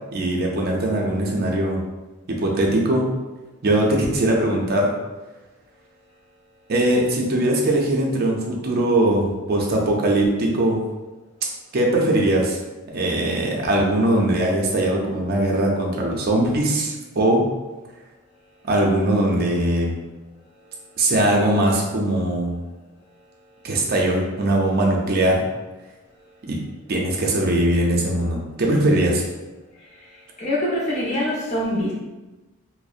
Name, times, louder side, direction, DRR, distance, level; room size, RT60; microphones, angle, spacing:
voice 1, 0.1-1.8 2.3-3.1 3.6-4.9 6.7-10.8 11.7-12.6 12.9-17.5 18.7-19.9 21.0-22.5 23.6-25.4 26.5-26.6 26.9-29.2, right 1 dB, 45° right, -1 dB, 0.4 m, -20 dB
voice 2, 30.0-31.9, left 1 dB, 35° left, -6 dB, 0.7 m, -25 dB
2.5 x 2.0 x 2.4 m, 1.1 s
head